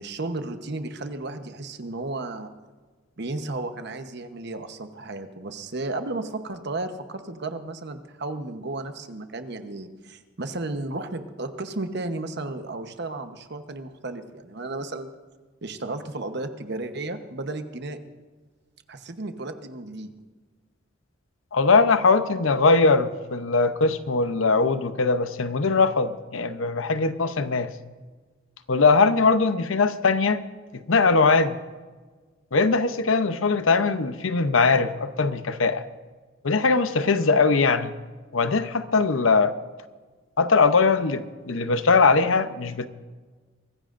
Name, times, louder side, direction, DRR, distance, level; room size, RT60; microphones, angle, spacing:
voice 1, 0.0-2.5 3.2-15.1 15.6-18.0 18.9-20.1, right 2 dB, 55° right, 8 dB, 1.0 m, -33 dB
voice 2, 21.5-27.7 28.7-30.4 30.7-31.6 32.5-35.8 36.4-37.9 38.3-39.5 40.4-42.9, left 4 dB, 80° left, 11 dB, 0.8 m, -21 dB
23.5 x 15.0 x 2.6 m, 1.4 s
head